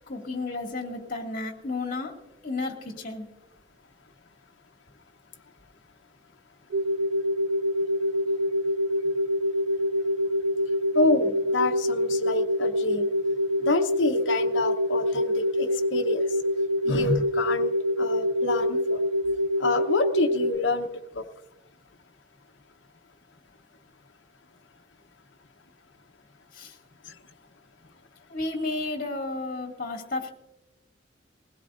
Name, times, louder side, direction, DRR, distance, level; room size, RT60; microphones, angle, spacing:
voice 1, 0.1-2.1 2.4-3.3 26.5-26.8 28.3-30.3, left 3 dB, 50° left, 1 dB, 2.2 m, -32 dB
sound 1, 6.7-20.6, left 1 dB, 80° right, 0.4 m, -26 dB
voice 2, 10.9-13.1 13.6-16.3 16.8-17.7 18.0-19.0 19.6-20.9 21.1-21.2, left 3 dB, 85° left, 5 dB, 0.9 m, -27 dB
20.5 x 16.5 x 2.6 m, 0.95 s
head